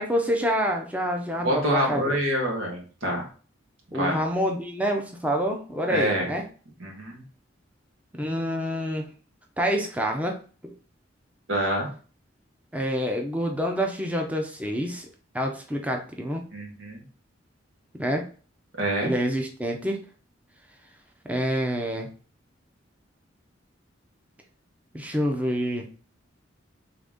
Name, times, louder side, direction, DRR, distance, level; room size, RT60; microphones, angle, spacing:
voice 1, 0.0-2.2 3.9-6.5 8.2-9.1 9.6-10.4 10.6-10.7 12.7-15.1 15.3-16.4 18.0-18.2 19.0-20.0 21.3-22.1 24.9-25.9, equal, 10° right, 2 dB, 0.6 m, -27 dB
voice 2, 1.4-3.3 3.9-4.2 5.9-6.3 6.8-7.2 11.5-11.9 16.5-17.0 18.8-19.1, right 1 dB, 90° right, -1 dB, 1.5 m, -26 dB
3.9 x 3.4 x 3.6 m, 0.39 s
head